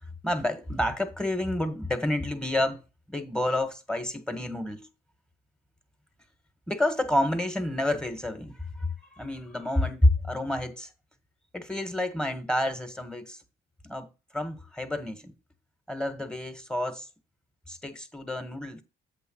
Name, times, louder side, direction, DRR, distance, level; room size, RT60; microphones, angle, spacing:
voice 1, 0.2-2.8 3.1-4.9 6.7-10.9 11.5-13.4 13.8-15.3 15.9-17.1 17.7-18.8, left 1 dB, 5° left, 1.6 m, -29 dB
8.1 x 3.4 x 6.3 m
cardioid pair, 90°, 20 cm